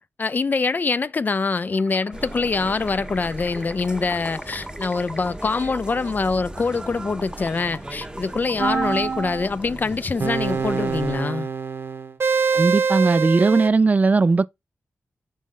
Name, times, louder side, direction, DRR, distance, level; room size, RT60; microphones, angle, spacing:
voice 1, 0.2-11.5, left 4 dB, 40° left, 0.4 m, -24 dB
sound 1, 1.7-10.2, equal, 5° left, 0.9 m, -41 dB
sound 2, 2.1-11.2, right 1 dB, 15° right, 0.7 m, -37 dB
sound 3, 8.6-9.5 10.2-13.7, right 5 dB, 55° right, 0.9 m, -24 dB
voice 2, 12.5-14.5, right 3 dB, 35° right, 0.3 m, -18 dB
6.2 x 4.2 x 3.7 m
cardioid pair, 80°, 5 cm